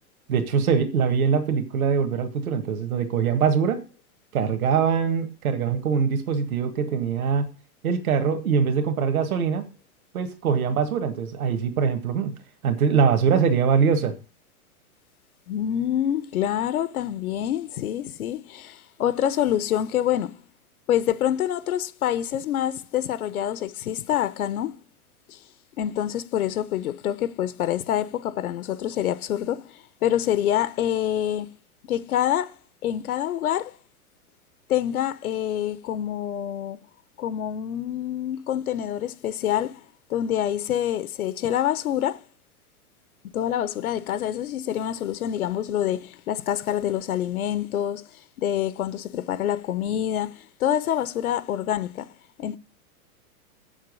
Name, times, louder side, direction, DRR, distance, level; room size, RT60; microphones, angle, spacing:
voice 1, 0.3-3.8 4.3-7.5 7.8-9.6 10.1-12.3 12.6-14.1, right 6 dB, 70° right, 1.9 m, -23 dB
voice 2, 15.5-20.4 20.9-24.8 25.3-25.4 25.8-31.5 31.9-32.6 32.8-33.8 34.7-36.8 37.2-39.8 40.1-42.2 43.3-48.1 48.4-52.1 52.4-52.6, left 11 dB, 70° left, 0.9 m, -26 dB
8.0 x 7.5 x 6.7 m
supercardioid pair, 180°, 44 cm